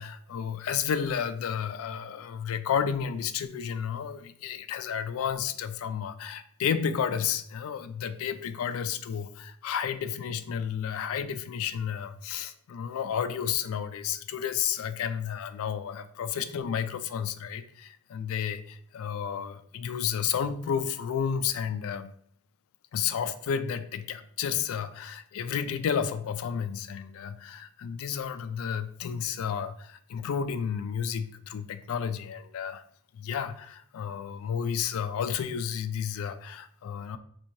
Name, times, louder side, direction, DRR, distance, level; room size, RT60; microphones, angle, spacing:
voice 1, 0.0-22.1 22.9-32.8 33.1-37.2, left 7 dB, 65° left, 11 dB, 0.3 m, -32 dB
4.4 x 2.7 x 2.6 m, 0.63 s
head